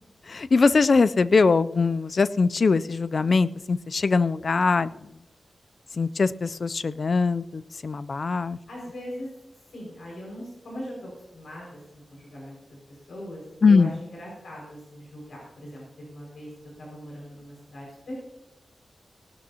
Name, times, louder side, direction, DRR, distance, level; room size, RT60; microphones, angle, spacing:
voice 1, 0.3-4.9 6.0-8.6 13.6-14.0, left 4 dB, 45° left, 15 dB, 0.3 m, -22 dB
voice 2, 8.7-9.3 9.7-12.8 13.1-16.5 16.8-18.1, equal, 75° left, -3 dB, 5.4 m, -40 dB
18.0 x 12.5 x 2.8 m, 0.94 s
wide cardioid pair, 170°, 0 cm